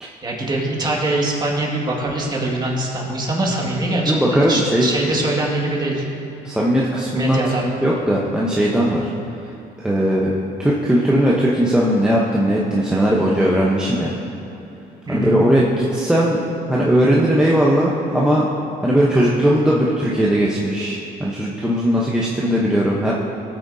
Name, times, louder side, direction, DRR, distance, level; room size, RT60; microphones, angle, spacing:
voice 1, 0.2-6.0 7.1-7.7 15.1-15.4, right 2 dB, 25° right, -2 dB, 1.9 m, -23 dB
voice 2, 4.1-4.9 6.4-9.1 9.8-10.3 10.6-14.1 15.1-16.4 16.7-18.5 18.8-23.1, equal, 5° right, -5 dB, 0.9 m, -18 dB
16.0 x 8.5 x 2.7 m, 2.9 s
cardioid pair, 110°, 17 cm